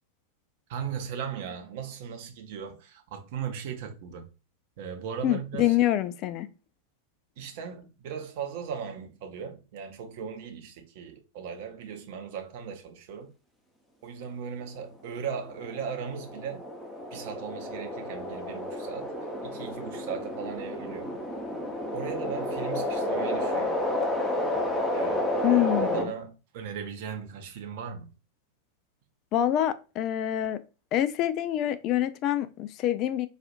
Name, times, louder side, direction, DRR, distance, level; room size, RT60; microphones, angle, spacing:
voice 1, 0.7-4.3 4.8-5.8 7.4-13.3 14.0-16.6 17.1-19.1 19.4-21.2 21.9-23.8 24.9-28.1, right 7 dB, 50° right, 0.7 m, -37 dB
voice 2, 5.2-6.5 25.4-26.1 29.3-30.6 30.9-33.3, left 12 dB, 35° left, 0.3 m, -26 dB
sound 1, 15.2-26.0, left 1 dB, 5° left, 0.8 m, -31 dB
4.1 x 2.4 x 2.4 m
figure-of-eight pair, 90°, 0 cm